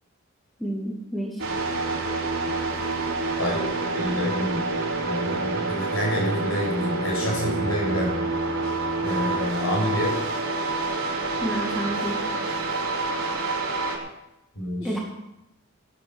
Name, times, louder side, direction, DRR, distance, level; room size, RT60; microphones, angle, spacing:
voice 1, 0.6-1.4 11.4-12.2 14.8-15.0, right 1 dB, ahead, -3 dB, 2.1 m, -30 dB
sound 1, 1.4-14.0, right 3 dB, 70° right, 3.7 m, -27 dB
voice 2, 3.4-4.6 5.0-8.1 9.0-10.2 14.5-14.9, equal, 75° left, -2 dB, 7.0 m, -27 dB
17.0 x 9.4 x 6.2 m, 0.88 s
head